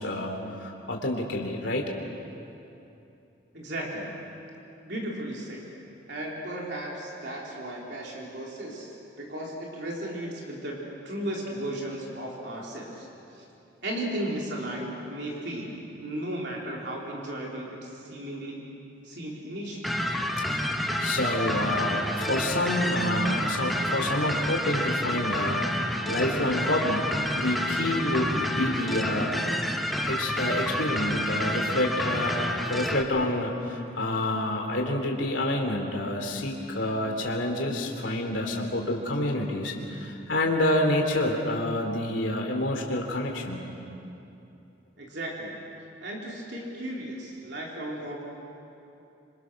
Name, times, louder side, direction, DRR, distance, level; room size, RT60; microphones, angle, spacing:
voice 1, 0.0-1.9 20.5-20.7 21.0-25.6 26.1-29.4 30.1-43.7, left 1 dB, 80° left, 1 dB, 2.8 m, -28 dB
voice 2, 3.5-4.1 4.8-5.7 6.1-13.1 13.3-13.4 13.8-18.6 19.0-20.0 45.0-45.6 46.0-48.2, right 1 dB, 60° right, -3 dB, 3.7 m, -35 dB
sound 1, 19.8-33.0, left 1 dB, ahead, 1.1 m, -29 dB
27.5 x 26.0 x 6.3 m, 2.8 s
head